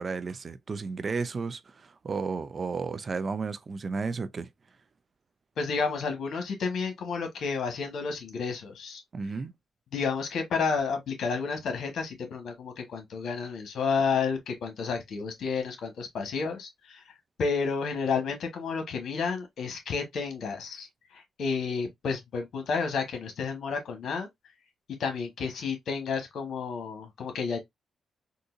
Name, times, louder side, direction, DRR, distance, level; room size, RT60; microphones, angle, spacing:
voice 1, 0.0-4.5 9.1-9.5, right 4 dB, 40° right, 0.3 m, -33 dB
voice 2, 5.6-9.0 9.9-17.0 17.4-24.3 25.0-27.6, left 5 dB, 70° left, 1.2 m, -31 dB
3.7 x 2.6 x 2.5 m
cardioid pair, 95°, 0 cm